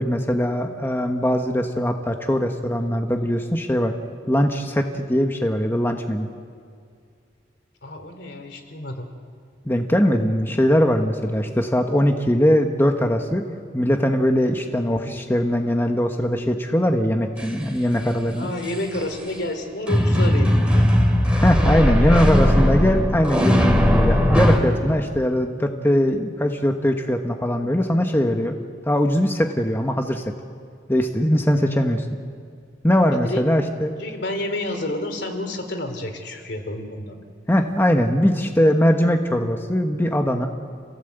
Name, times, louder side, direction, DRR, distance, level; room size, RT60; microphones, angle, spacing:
voice 1, 0.0-3.9 4.3-6.3 9.7-13.4 13.7-18.5 21.4-28.5 28.9-30.2 30.9-32.0 32.8-34.0 37.5-40.5, equal, 15° left, 4 dB, 1.2 m, -21 dB
voice 2, 7.8-9.1 18.4-20.9 33.1-33.4 34.0-37.2, left 1 dB, 70° left, 6 dB, 3.1 m, -29 dB
sound 1, 17.4-17.5 18.6-19.0 19.9-24.6, equal, 5° right, 3.0 m, -18 dB
29.5 x 16.5 x 8.0 m, 2.2 s
head